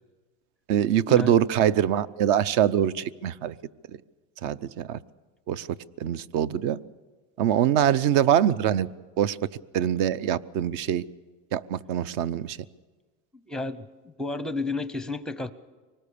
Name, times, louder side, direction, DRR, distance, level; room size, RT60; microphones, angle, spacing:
voice 1, 0.7-3.5 4.4-5.0 5.5-5.7 6.0-6.8 7.4-8.9 9.2-9.4 9.7-11.0 11.5-12.6, right 10 dB, 50° right, 17 dB, 0.7 m, -23 dB
voice 2, 13.5-13.9 14.2-15.5, left 3 dB, ahead, 12 dB, 0.6 m, -31 dB
24.5 x 19.0 x 6.9 m, 1.3 s
supercardioid pair, 135°, 41 cm